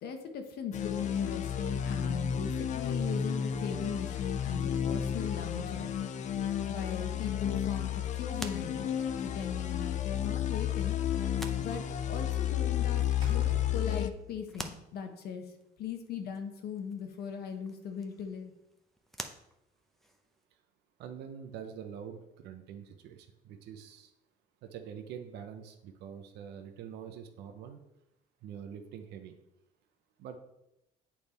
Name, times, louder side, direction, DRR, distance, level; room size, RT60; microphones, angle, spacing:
voice 1, 0.0-5.9 6.7-11.0 11.6-15.5 15.8-18.5, left 7 dB, 70° left, 5 dB, 1.1 m, -39 dB
sound 1, 0.7-14.1, left 9 dB, 45° left, 0.4 m, -32 dB
sound 2, 7.6-20.5, equal, ahead, 0.6 m, -50 dB
Slam, 9.3-10.3 12.4-12.7 13.1-14.3, right 2 dB, 30° right, 1.9 m, -45 dB
voice 2, 21.0-24.1 24.6-27.8 28.4-29.3 30.2-30.4, right 8 dB, 80° right, 6 dB, 0.7 m, -45 dB
8.5 x 3.4 x 4.2 m, 0.86 s
cardioid pair, 110°, 17 cm